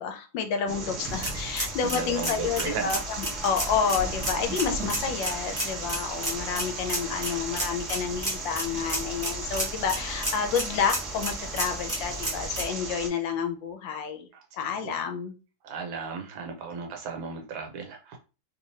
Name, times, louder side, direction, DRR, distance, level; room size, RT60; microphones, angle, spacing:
voice 1, 0.0-14.3 14.5-15.3, left 6 dB, 75° left, 6 dB, 1.3 m, -29 dB
sound 1, 0.7-13.1, right 3 dB, 45° right, 1.2 m, -36 dB
sound 2, 1.0-12.6, right 1 dB, 15° right, 0.6 m, -34 dB
voice 2, 1.5-2.9 14.3-15.1 15.6-18.2, right 5 dB, 90° right, 3 dB, 1.6 m, -36 dB
3.6 x 3.0 x 2.7 m, 0.32 s
omnidirectional pair, 2.1 m